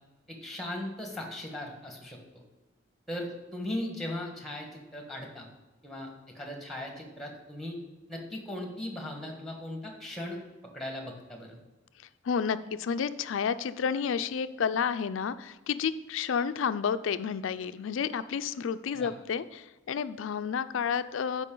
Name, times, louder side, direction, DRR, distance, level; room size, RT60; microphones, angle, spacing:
voice 1, 0.3-2.4 3.1-5.5 5.8-6.1 6.3-7.8 8.1-10.4 10.7-11.6 18.9-19.1, left 1 dB, ahead, 2 dB, 1.4 m, -38 dB
voice 2, 12.2-21.4, left 6 dB, 70° left, 13 dB, 0.4 m, -30 dB
11.5 x 5.0 x 3.8 m, 1.1 s
head